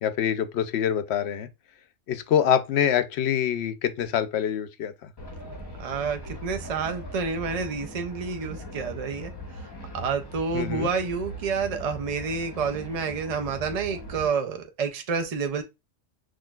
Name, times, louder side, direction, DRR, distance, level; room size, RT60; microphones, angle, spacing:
voice 1, 0.0-1.5 2.1-5.1 10.5-10.9, left 9 dB, 65° left, 0.8 m, -25 dB
sound 1, 5.2-14.3, equal, 25° left, 0.7 m, -40 dB
voice 2, 5.8-9.3 9.9-15.6, right 5 dB, 60° right, 0.4 m, -29 dB
6.1 x 2.5 x 2.3 m
omnidirectional pair, 1.3 m